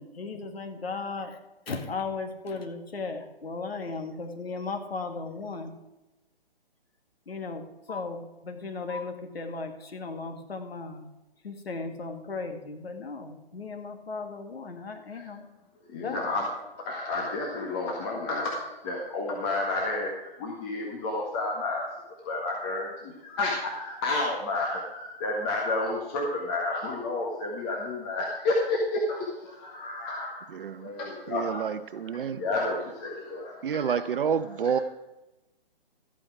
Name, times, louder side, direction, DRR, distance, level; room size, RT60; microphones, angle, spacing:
voice 1, 0.0-1.4 1.7-5.7 7.3-11.1 11.4-15.5 15.9-16.4, left 4 dB, 80° left, 5 dB, 2.1 m, -36 dB
voice 2, 15.9-16.4 16.8-21.9 22.2-31.7 32.0-34.8, left 2 dB, 25° left, -1 dB, 1.6 m, -31 dB
voice 3, 30.5-30.9 31.3-32.4 33.6-34.8, right 7 dB, 60° right, 14 dB, 0.8 m, -29 dB
13.5 x 8.8 x 4.9 m, 1.0 s
hypercardioid pair, 150°, 30 cm